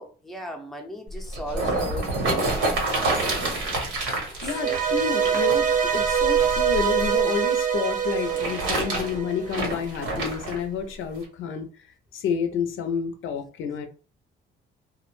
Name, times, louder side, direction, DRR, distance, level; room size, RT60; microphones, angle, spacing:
voice 1, 0.0-3.5 4.4-4.9, left 1 dB, ahead, 0.6 m, -38 dB
sound 1, 1.1-7.2 8.0-10.6 11.2-11.3, right 2 dB, 80° right, 1.1 m, -28 dB
voice 2, 4.4-11.7 12.1-13.9, left 6 dB, 80° left, 0.5 m, -29 dB
sound 2, 4.5-9.7, right 8 dB, 45° right, 0.7 m, -24 dB
2.3 x 2.1 x 3.0 m
cardioid pair, 90°, 20 cm